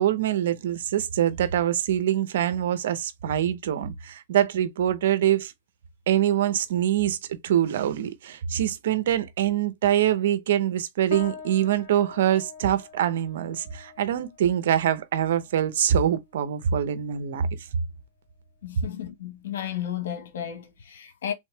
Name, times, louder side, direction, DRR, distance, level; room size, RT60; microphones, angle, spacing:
voice 1, 0.0-5.5 6.1-7.2 7.4-17.5, right 10 dB, 70° right, 0.8 m, -24 dB
sound 1, 11.1-20.8, left 5 dB, 55° left, 1.9 m, -46 dB
voice 2, 18.6-21.3, left 10 dB, 75° left, 1.2 m, -33 dB
3.6 x 3.1 x 3.3 m
hypercardioid pair, 135°, 0 cm